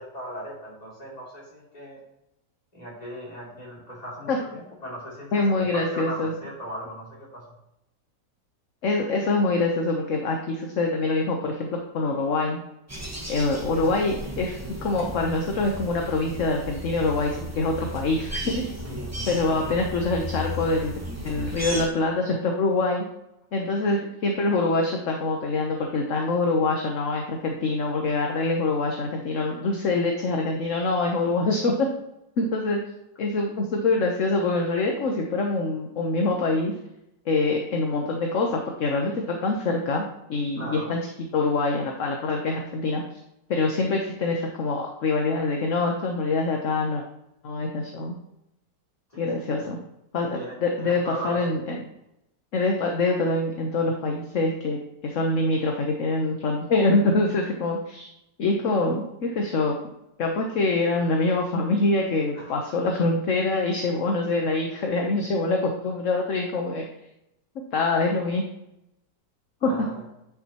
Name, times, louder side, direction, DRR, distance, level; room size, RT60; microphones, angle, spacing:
voice 1, 0.0-2.0 2.7-5.4 5.7-7.4 18.8-19.1 19.5-19.7 40.6-40.9 49.1-49.7 50.3-51.4 62.3-62.5 69.6-70.0, equal, 20° left, -5 dB, 3.0 m, -38 dB
voice 2, 5.3-6.3 8.8-12.6 13.3-18.7 19.3-21.0 21.2-23.0 23.5-31.9 32.4-32.8 33.2-36.7 37.3-41.0 41.3-43.0 43.5-47.0 47.4-48.2 49.2-49.8 50.1-51.8 52.5-58.1 58.4-59.7 60.2-66.8 67.7-68.5 69.6-69.7, left 3 dB, 50° left, 1 dB, 1.1 m, -25 dB
sound 1, 12.9-21.9, equal, 10° right, 1.1 m, -35 dB
9.9 x 6.0 x 2.9 m, 0.85 s
omnidirectional pair, 1.9 m